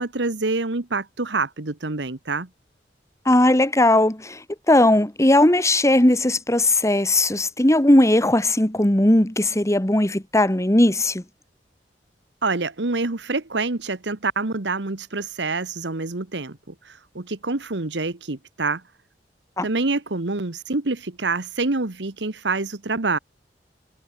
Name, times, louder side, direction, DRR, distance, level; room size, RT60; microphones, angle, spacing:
voice 1, 0.0-2.5 12.4-16.6 16.8-18.8 19.6-23.2, right 3 dB, 80° right, 1.4 m, -26 dB
voice 2, 3.3-11.2 19.6-19.7, left 1 dB, 15° left, 1.8 m, -18 dB
head